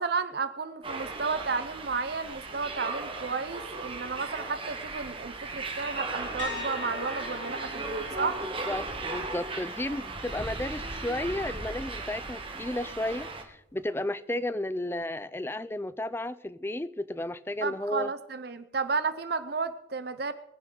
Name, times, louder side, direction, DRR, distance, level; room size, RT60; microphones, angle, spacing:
voice 1, 0.0-8.4 17.6-20.3, right 4 dB, 55° right, 0.7 m, -32 dB
sound 1, 0.8-13.4, right 3 dB, 25° right, 1.5 m, -37 dB
sound 2, 6.4-10.1 10.5-10.8 13.7-13.8, left 5 dB, 75° left, 2.1 m, -43 dB
voice 2, 8.7-18.1, left 1 dB, 10° left, 0.4 m, -33 dB
21.5 x 10.0 x 3.9 m
head